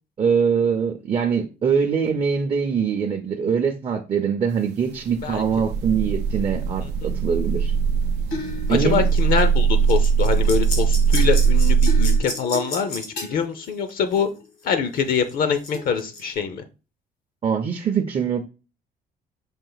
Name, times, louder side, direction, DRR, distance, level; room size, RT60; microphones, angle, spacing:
voice 1, 0.2-7.7 8.7-9.0 17.4-18.5, right 6 dB, 35° right, 0.5 m, -23 dB
sound 1, 4.8-12.2, right 6 dB, 85° right, 0.5 m, -20 dB
sound 2, 8.3-9.6 9.9-14.4 14.7-16.2, left 2 dB, 85° left, 1.6 m, -33 dB
voice 2, 8.7-14.3 14.6-16.6, left 6 dB, 60° left, 0.6 m, -24 dB
5.3 x 2.5 x 3.9 m
cardioid pair, 110°, 17 cm